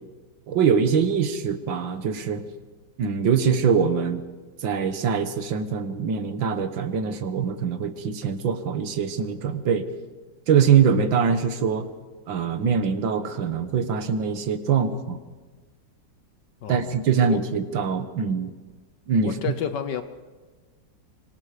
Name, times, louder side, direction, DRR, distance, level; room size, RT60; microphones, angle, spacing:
voice 1, 0.5-2.4 3.0-4.2 4.6-9.8 10.5-11.9 12.3-15.2 16.7-18.5 19.1-19.5, right 6 dB, 85° right, 9 dB, 2.0 m, -23 dB
voice 2, 16.6-17.4 17.9-18.1 19.2-20.0, left 8 dB, 70° left, 10 dB, 1.5 m, -31 dB
25.0 x 22.5 x 5.0 m, 1.4 s
omnidirectional pair, 2.0 m